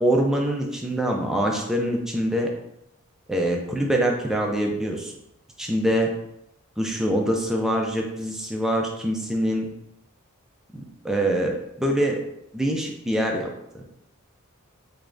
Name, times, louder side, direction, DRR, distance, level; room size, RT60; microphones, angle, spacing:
voice 1, 0.0-2.5 3.3-5.1 5.6-6.1 6.8-9.7 10.7-12.2 12.5-13.5, right 1 dB, ahead, 0 dB, 0.4 m, -24 dB
3.5 x 3.1 x 2.5 m, 0.82 s
head